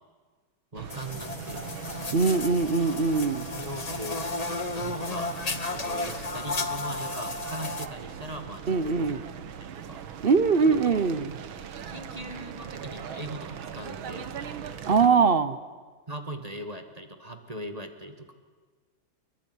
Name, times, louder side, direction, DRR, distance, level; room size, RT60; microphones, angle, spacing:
voice 1, 0.7-1.7 3.5-4.3 4.7-5.3 5.7-9.0 9.6-10.0 11.9-14.3 15.0-15.3 16.1-18.3, right 1 dB, 20° right, 7 dB, 2.0 m, -40 dB
sound 1, 0.7-15.1, right 7 dB, 85° right, 2.1 m, -40 dB
sound 2, 0.9-7.9, left 3 dB, 25° left, 1.0 m, -33 dB
voice 2, 2.1-3.5 8.7-9.2 10.2-11.3 14.9-15.6, right 5 dB, 40° right, 14 dB, 0.9 m, -22 dB
25.5 x 22.0 x 9.8 m, 1.5 s
omnidirectional pair, 2.2 m